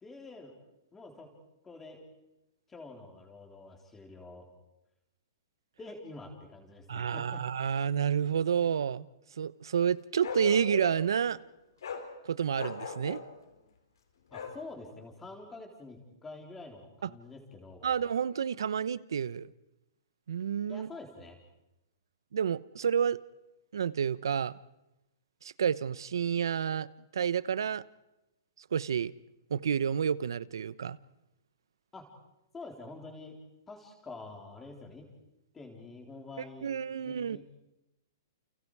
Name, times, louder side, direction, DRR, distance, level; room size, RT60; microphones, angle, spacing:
voice 1, 0.0-0.5 0.9-1.3 1.6-2.0 2.7-4.5 5.8-7.4 14.3-17.9 20.7-21.4 31.9-32.1 32.5-33.4 33.7-35.1 35.5-37.4, left 3 dB, 10° left, 3 dB, 3.7 m, -47 dB
voice 2, 6.9-9.1 9.4-11.4 12.2-13.2 17.8-19.5 20.3-20.9 22.3-23.2 23.7-24.5 25.4-26.9 27.1-27.8 28.7-29.1 29.5-31.0 36.6-37.4, right 7 dB, 90° right, 18 dB, 0.9 m, -29 dB
Bark, 10.2-11.1 11.8-12.1 12.5-13.3 14.3-14.6, left 5 dB, 80° left, 4.3 m, -38 dB
29.5 x 29.5 x 4.8 m, 0.92 s
hypercardioid pair, 165°, 2 cm